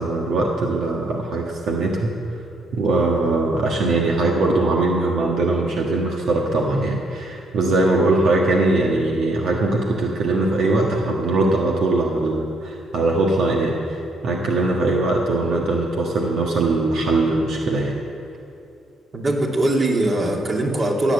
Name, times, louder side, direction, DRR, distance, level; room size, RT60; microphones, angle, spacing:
voice 1, 0.0-2.1 2.7-18.0, right 2 dB, 70° right, 0 dB, 1.4 m, -21 dB
voice 2, 19.1-21.1, right 1 dB, 35° right, 0 dB, 2.4 m, -21 dB
17.5 x 7.5 x 8.0 m, 2.7 s
cardioid pair, 90°, 0 cm